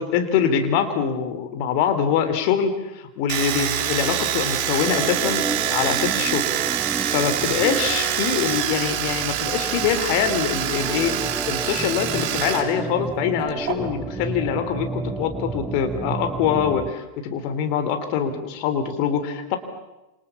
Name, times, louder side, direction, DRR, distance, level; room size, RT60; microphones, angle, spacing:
voice 1, 0.0-5.4 5.7-6.5 6.9-11.2 11.5-19.6, left 7 dB, 45° left, 8 dB, 3.7 m, -24 dB
Domestic sounds home sounds, 3.3-12.6 12.9-13.7, right 11 dB, 45° right, 5.5 m, -25 dB
Organ, 4.8-16.9, right 3 dB, 10° right, 1.0 m, -32 dB
28.5 x 27.5 x 7.2 m, 1.0 s
figure-of-eight pair, 90°, 0 cm